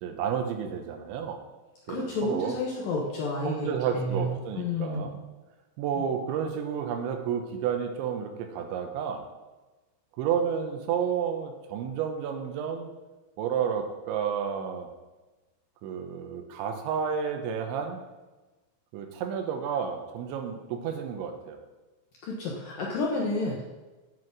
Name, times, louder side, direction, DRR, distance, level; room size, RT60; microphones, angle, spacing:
voice 1, 0.0-1.4 1.9-2.6 3.4-5.2 5.8-9.3 10.2-12.9 13.4-14.9 15.8-18.0 18.9-21.6, right 7 dB, 75° right, 5 dB, 3.1 m, -31 dB
voice 2, 1.9-3.7 3.9-5.1 6.0-6.1 22.2-23.6, left 2 dB, 75° left, -3 dB, 2.0 m, -30 dB
8.1 x 7.9 x 7.4 m, 1.2 s
omnidirectional pair, 5.9 m